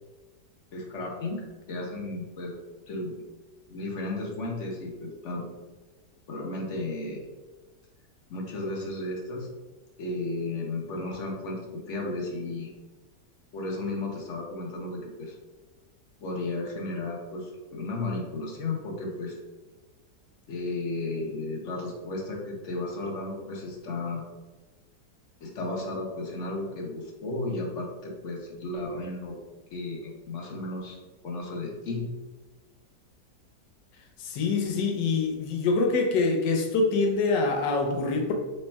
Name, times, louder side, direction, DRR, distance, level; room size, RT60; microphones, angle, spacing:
voice 1, 0.7-2.5 2.9-3.1 3.7-5.4 6.3-7.2 8.3-9.5 10.0-12.7 13.5-15.4 16.2-19.4 20.5-24.3 25.4-29.4 29.7-31.0 31.2-32.0, left 2 dB, 60° left, -1 dB, 0.8 m, -34 dB
voice 2, 34.2-38.3, left 3 dB, 85° left, 3 dB, 1.3 m, -25 dB
4.2 x 3.2 x 2.2 m, 1.2 s
omnidirectional pair, 1.8 m